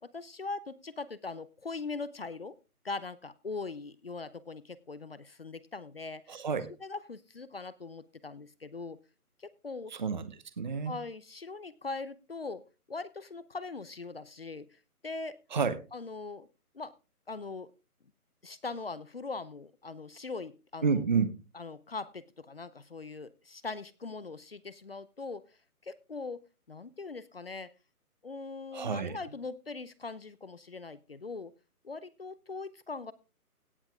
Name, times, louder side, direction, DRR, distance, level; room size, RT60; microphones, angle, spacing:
voice 1, 0.0-2.6 2.8-6.4 6.8-9.0 9.4-9.9 10.8-12.6 12.9-15.4 15.9-16.5 16.7-16.9 17.3-17.7 18.4-21.0 21.5-25.4 25.8-27.7 28.2-31.5 31.8-33.1, left 3 dB, 40° left, 17 dB, 0.6 m, -41 dB
voice 2, 6.3-6.7 9.9-10.9 15.5-15.8 20.8-21.4 28.7-29.2, right 5 dB, 30° right, 13 dB, 0.8 m, -30 dB
17.0 x 7.2 x 3.5 m, 0.31 s
figure-of-eight pair, 160°, 45 cm